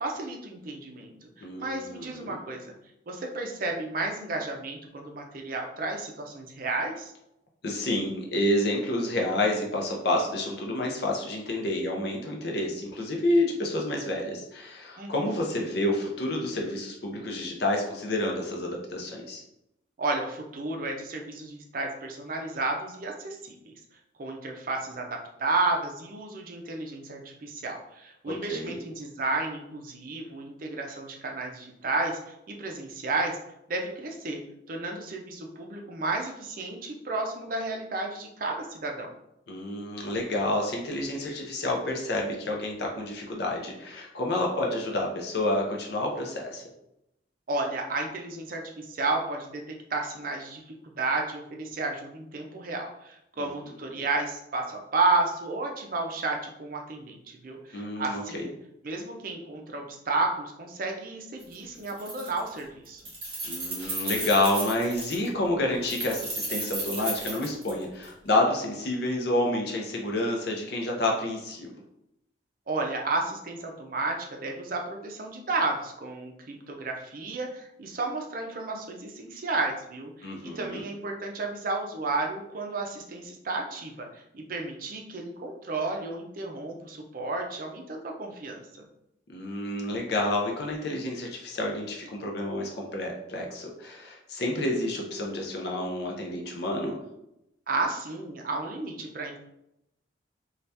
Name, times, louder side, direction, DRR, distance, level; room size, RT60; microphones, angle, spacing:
voice 1, 0.0-2.7 3.1-7.1 15.0-15.3 20.0-23.7 24.2-32.2 32.5-33.4 33.7-34.4 34.7-39.1 47.5-49.6 49.9-50.6 51.0-57.2 57.4-58.5 58.8-63.0 72.7-88.8 97.7-99.4, right 3 dB, 45° right, 2 dB, 0.5 m, -32 dB
voice 2, 1.4-2.4 7.6-19.4 28.3-28.8 39.5-46.6 53.4-53.5 53.9-54.0 57.7-58.4 63.4-71.7 80.2-80.9 89.3-97.0, left 1 dB, 55° left, 0 dB, 0.5 m, -29 dB
Keys jangling, 61.4-61.5 61.8-62.6 62.9-65.3 65.8-68.1, right 2 dB, 30° right, 1.1 m, -34 dB
2.7 x 2.3 x 3.3 m, 0.83 s
head